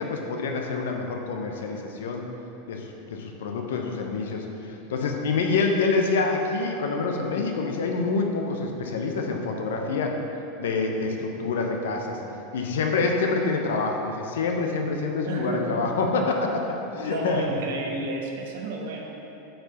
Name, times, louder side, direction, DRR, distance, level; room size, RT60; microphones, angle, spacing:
voice 1, 0.0-2.2 2.7-10.1 10.6-12.2 12.5-16.6 16.9-17.5, left 4 dB, 75° left, 2 dB, 0.8 m, -27 dB
voice 2, 15.2-15.9 17.0-19.0, right 2 dB, 70° right, 0 dB, 1.2 m, -31 dB
7.7 x 4.7 x 5.7 m, 3.0 s
hypercardioid pair, 90°, 0 cm